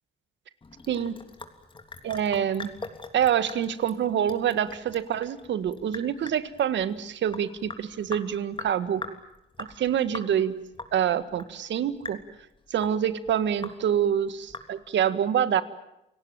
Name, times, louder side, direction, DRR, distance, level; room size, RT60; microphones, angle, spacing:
Sink (filling or washing) / Drip, 0.6-15.1, left 3 dB, 25° left, 3.3 m, -43 dB
voice 1, 0.9-1.2 2.0-2.7 3.1-9.0 9.6-10.5 10.9-12.2 12.7-15.6, right 9 dB, 65° right, 13 dB, 1.7 m, -26 dB
29.5 x 18.0 x 9.0 m, 0.85 s
cardioid pair, 90°, 20 cm